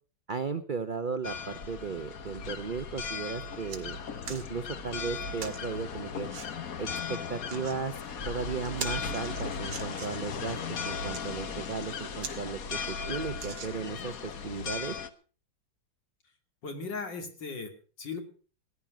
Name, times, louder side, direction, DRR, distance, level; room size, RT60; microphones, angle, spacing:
voice 1, 0.3-4.0 4.3-6.3 6.8-14.9, right 5 dB, 70° right, 11 dB, 0.4 m, -36 dB
sound 1, 1.2-15.1, left 5 dB, 55° left, 1.5 m, -37 dB
sound 2, 3.0-3.1 3.4-3.8 4.2-4.5 5.4-5.6 6.3-6.5 7.3-7.8 8.2-8.3 8.6-10.3 10.9-11.2 11.8-11.9 12.2-12.4 12.7-12.8 13.3-14.1 14.7-14.8, right 6 dB, 90° right, 2.5 m, -42 dB
voice 2, 16.6-18.2, left 4 dB, 70° left, 5 dB, 3.3 m, -38 dB
18.5 x 10.5 x 6.0 m, 0.39 s
omnidirectional pair, 2.0 m